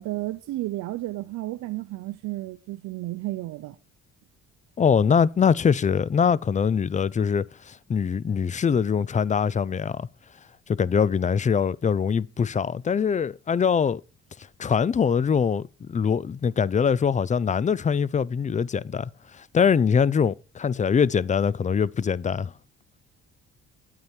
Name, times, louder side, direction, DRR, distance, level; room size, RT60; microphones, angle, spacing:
voice 1, 0.0-3.8, right 17 dB, 85° right, 0.7 m, -32 dB
voice 2, 4.8-10.1 10.7-14.0 14.6-22.5, left 6 dB, 25° left, 0.4 m, -23 dB
9.6 x 8.6 x 4.4 m
cardioid pair, 90°, 30 cm